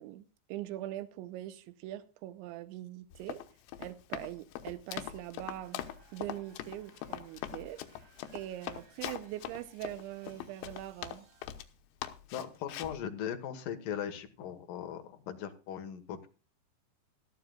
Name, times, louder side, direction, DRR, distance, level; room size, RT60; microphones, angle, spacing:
voice 1, 0.0-3.4 3.8-5.8 6.1-7.8 8.3-11.3, right 14 dB, 85° right, 3.1 m, -42 dB
Run, 3.1-11.7 12.0-13.0, left 12 dB, 90° left, 3.4 m, -42 dB
sound 1, 5.6-11.5, right 5 dB, 65° right, 5.5 m, -65 dB
voice 2, 12.3-16.3, left 9 dB, 65° left, 2.5 m, -39 dB
17.0 x 13.5 x 2.3 m
omnidirectional pair, 5.2 m